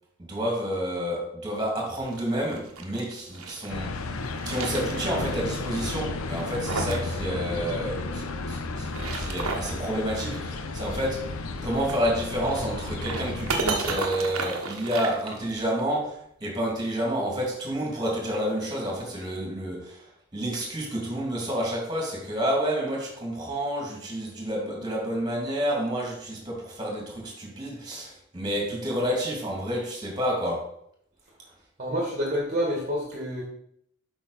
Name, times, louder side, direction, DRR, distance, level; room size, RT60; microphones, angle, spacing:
voice 1, 0.2-4.1 4.5-11.3 11.6-30.7, equal, 20° right, -2 dB, 2.6 m, -29 dB
sound 1, 1.9-3.7 4.2-5.4 5.7-5.8 6.3-7.1 7.4-7.5 8.7-9.8 11.7-15.8, right 3 dB, 80° right, 1.2 m, -33 dB
sound 2, 3.7-13.6, left 3 dB, 75° left, 0.7 m, -33 dB
voice 2, 7.5-7.8 31.8-33.4, equal, 35° right, -3 dB, 1.7 m, -28 dB
8.3 x 5.7 x 4.2 m, 0.71 s
head